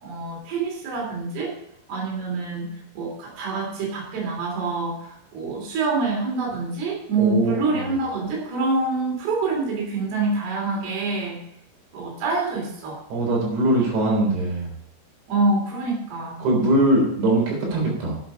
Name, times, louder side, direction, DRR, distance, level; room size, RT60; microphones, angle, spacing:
voice 1, 0.0-1.5 1.9-2.7 3.0-11.4 11.9-13.0 15.3-16.5, right 3 dB, 65° right, -3 dB, 5.2 m, -26 dB
voice 2, 7.2-7.5 13.1-14.7 16.4-18.1, right 1 dB, 90° right, -2 dB, 6.0 m, -21 dB
10.5 x 8.0 x 5.7 m, 0.72 s
omnidirectional pair, 5.0 m